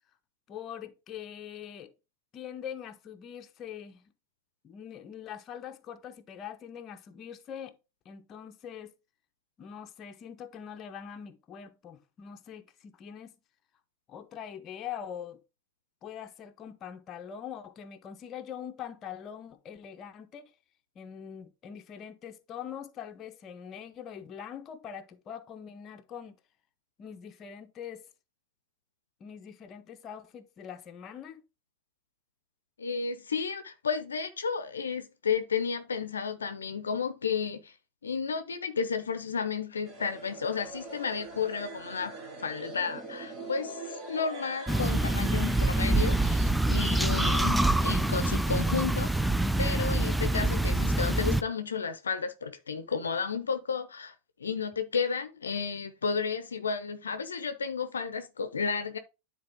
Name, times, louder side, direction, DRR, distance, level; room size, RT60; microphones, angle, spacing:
voice 1, 0.5-1.9 2.3-4.1 4.6-7.8 8.0-8.9 9.6-13.3 14.1-15.4 16.0-20.5 20.9-26.3 27.0-28.1 29.2-31.4, left 8 dB, 35° left, 0.9 m, -43 dB
voice 2, 32.8-37.7 38.0-42.1 42.4-46.4 46.7-49.1 49.6-54.1 54.4-59.0, left 5 dB, 85° left, 0.7 m, -32 dB
sound 1, 39.9-46.5, right 2 dB, 35° right, 2.7 m, -43 dB
sound 2, 44.7-51.4, right 2 dB, ahead, 0.5 m, -26 dB
9.8 x 4.1 x 3.7 m
hypercardioid pair, 90°, 0 cm